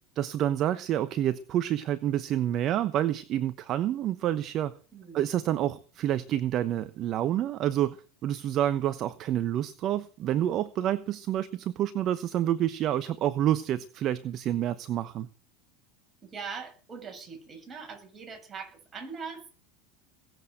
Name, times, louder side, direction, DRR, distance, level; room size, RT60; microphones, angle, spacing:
voice 1, 0.2-4.7 5.1-8.0 8.2-15.3, right 11 dB, 45° right, 13 dB, 1.0 m, -28 dB
voice 2, 4.9-5.3 16.2-19.5, right 5 dB, 25° right, 3 dB, 7.5 m, -41 dB
20.5 x 8.1 x 7.8 m, 0.39 s
hypercardioid pair, 95°, 0 cm